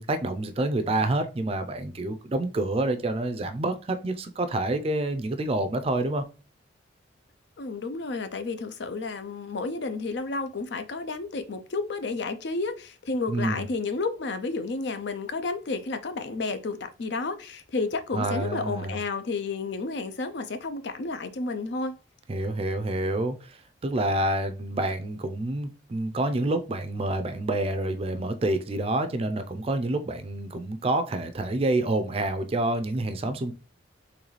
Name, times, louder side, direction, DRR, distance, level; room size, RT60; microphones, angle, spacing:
voice 1, 0.0-6.2 13.3-13.7 18.1-19.0 22.3-33.5, right 2 dB, 30° right, 0.4 m, -28 dB
voice 2, 7.6-22.0, left 3 dB, 65° left, 0.5 m, -31 dB
3.9 x 3.1 x 3.1 m
head